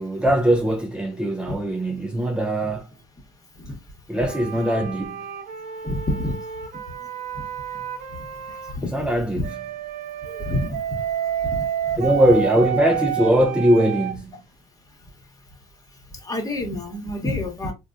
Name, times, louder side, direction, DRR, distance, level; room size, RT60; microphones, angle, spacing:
voice 1, 0.0-2.9 4.1-5.3 8.8-9.6 12.0-14.4, right 1 dB, 5° right, 0.3 m, -21 dB
sound 1, 4.2-8.8 9.4-14.2, right 9 dB, 65° right, 0.6 m, -30 dB
voice 2, 5.8-6.4 8.8-9.0 10.2-10.7 11.5-11.6 16.2-17.7, left 1 dB, 20° left, 0.9 m, -27 dB
3.3 x 2.2 x 2.4 m
cardioid pair, 110°, 17 cm